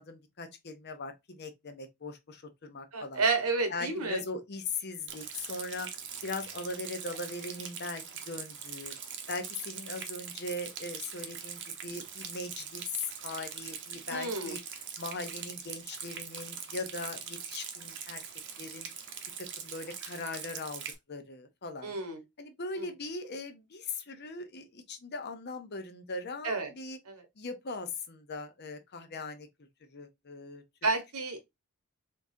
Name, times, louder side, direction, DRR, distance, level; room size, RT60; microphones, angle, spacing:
voice 1, 0.0-3.2 3.7-5.9 6.2-8.9 9.3-18.2 18.6-18.9 19.4-20.8 21.1-22.0 22.4-27.0 27.4-29.5 29.9-30.6, left 3 dB, 45° left, 0.8 m, -40 dB
voice 2, 2.9-4.2 14.1-14.5 21.8-22.2 22.8-22.9 26.4-26.7 27.1-27.2 30.8-31.4, right 3 dB, 80° right, 1.3 m, -30 dB
Rain, 5.1-20.9, right 7 dB, 55° right, 0.9 m, -42 dB
3.8 x 3.7 x 2.7 m
head